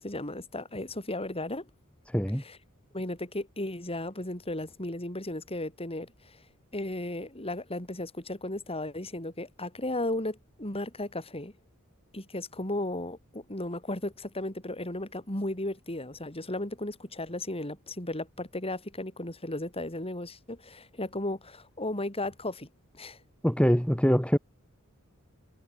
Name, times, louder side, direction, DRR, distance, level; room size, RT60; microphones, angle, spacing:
voice 1, 0.0-1.7 2.4-2.6 2.9-6.4 6.7-11.5 12.1-22.7 22.9-23.2, left 1 dB, 25° left, 6.2 m, -35 dB
voice 2, 2.1-2.4 23.4-24.4, equal, 5° left, 3.2 m, -23 dB
head